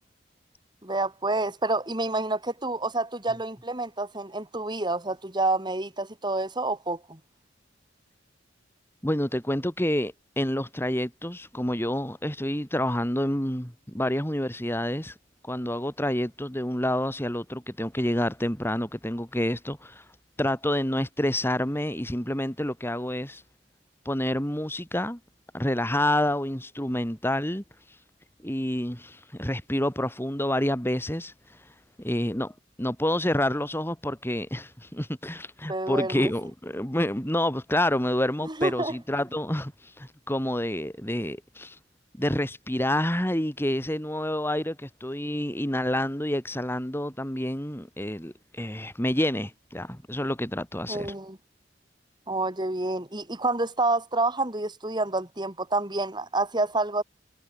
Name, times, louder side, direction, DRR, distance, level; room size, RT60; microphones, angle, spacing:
voice 1, 0.8-7.2 35.7-36.3 38.4-39.0 50.9-51.4 52.3-57.0, right 2 dB, 25° right, 4.0 m, -28 dB
voice 2, 9.0-15.1 15.4-20.0 20.4-23.4 24.1-25.2 25.5-27.6 28.4-31.6 32.0-32.5 32.8-41.8 42.2-51.1, left 1 dB, 10° left, 5.4 m, -28 dB
head